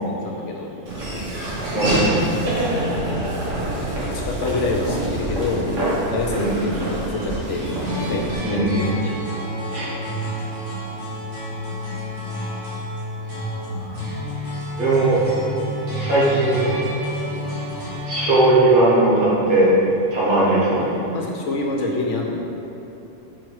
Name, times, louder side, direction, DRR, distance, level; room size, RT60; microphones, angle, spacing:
voice 1, 0.2-0.7 2.9-3.2 3.6-7.7 7.9-8.9 20.8-20.9 21.1-22.4, left 3 dB, 60° left, 0 dB, 1.0 m, -27 dB
Laughter / Walk footsteps, 0.9-8.4, right 1 dB, 60° right, 1.7 m, -25 dB
voice 2, 1.7-2.0 6.3-6.5 8.4-8.7 9.7-10.0 14.8-15.2 16.0-16.7 18.1-19.7 20.1-20.8, right 2 dB, 75° right, -7 dB, 2.1 m, -18 dB
sound 1, 7.6-18.4, left 1 dB, 40° right, 1.6 m, -29 dB
6.0 x 4.7 x 4.7 m, 2.9 s
omnidirectional pair, 1.5 m